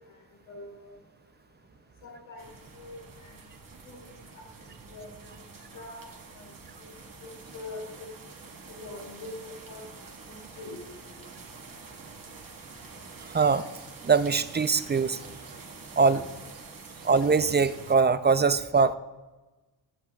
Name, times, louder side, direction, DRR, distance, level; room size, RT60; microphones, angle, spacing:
voice 1, 0.5-0.9 2.0-2.5 2.7-3.4 3.8-4.0 4.3-4.4 4.9-5.1 5.7-6.5 6.8-6.9 7.2-8.1 8.7-9.9 10.3-10.8 16.1-16.2, left 2 dB, 85° left, -3 dB, 3.6 m, -43 dB
sound 1, 2.4-18.0, right 4 dB, 45° right, 1.7 m, -47 dB
voice 2, 13.3-13.6 14.0-15.3 16.0-16.2 17.0-19.0, right 5 dB, 20° right, 13 dB, 0.5 m, -22 dB
19.5 x 7.3 x 2.3 m, 1.2 s
supercardioid pair, 65°, 48 cm